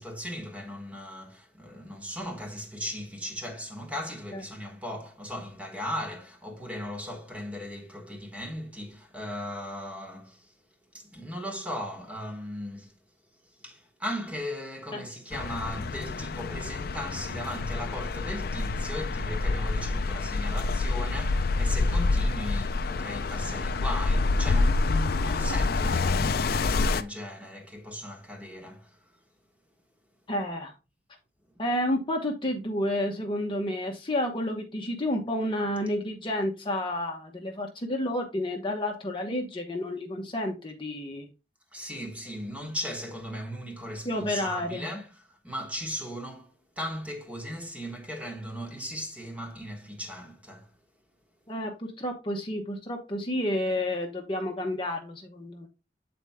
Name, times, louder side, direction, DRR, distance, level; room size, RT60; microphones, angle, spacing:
voice 1, 0.0-10.5 10.9-12.9 13.4-29.2 31.5-31.6 41.7-50.7, equal, 10° right, 1.3 m, -37 dB
sound 1, 15.3-27.0, left 3 dB, 60° left, 0.5 m, -27 dB
voice 2, 30.3-30.7 31.6-41.3 44.0-44.9 51.5-55.7, left 1 dB, 30° left, 0.9 m, -30 dB
8.0 x 4.3 x 3.5 m
head